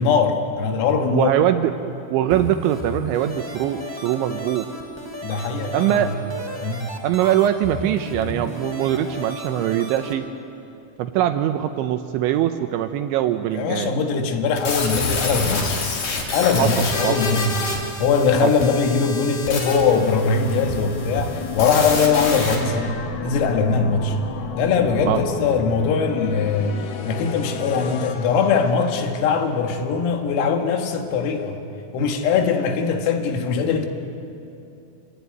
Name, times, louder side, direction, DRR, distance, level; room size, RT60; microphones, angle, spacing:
voice 1, 0.0-1.3 5.2-6.1 6.6-6.9 13.5-15.9 16.3-17.7 18.0-24.2 24.6-31.6 31.9-33.9, left 5 dB, 85° left, 4 dB, 4.5 m, -21 dB
voice 2, 1.1-1.7 2.1-4.7 5.7-6.1 7.0-10.3 11.0-13.9 16.6-17.2 18.4-18.5 25.1-25.2, right 12 dB, 80° right, 8 dB, 2.8 m, -22 dB
sound 1, 2.3-10.1, equal, 10° right, 1.1 m, -34 dB
sound 2, 14.6-22.6, left 3 dB, 45° left, 4.3 m, -28 dB
sound 3, 19.2-29.4, left 5 dB, 65° left, 2.4 m, -33 dB
27.0 x 19.5 x 9.3 m, 2.7 s
omnidirectional pair, 5.9 m